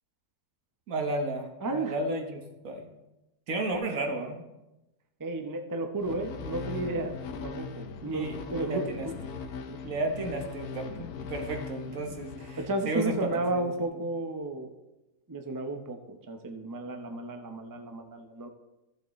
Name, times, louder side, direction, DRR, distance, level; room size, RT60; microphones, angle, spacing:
voice 1, 0.9-2.9 3.5-4.4 8.1-9.1 9.8-13.7, right 2 dB, 65° right, 3 dB, 1.6 m, -33 dB
voice 2, 1.6-2.0 5.2-7.1 7.4-9.1 9.7-9.8 12.6-14.7 15.3-18.5, right 2 dB, 25° right, 5 dB, 0.5 m, -33 dB
sound 1, 6.0-13.4, left 5 dB, 85° left, 1.3 m, -40 dB
14.5 x 7.3 x 3.1 m, 0.97 s
omnidirectional pair, 1.6 m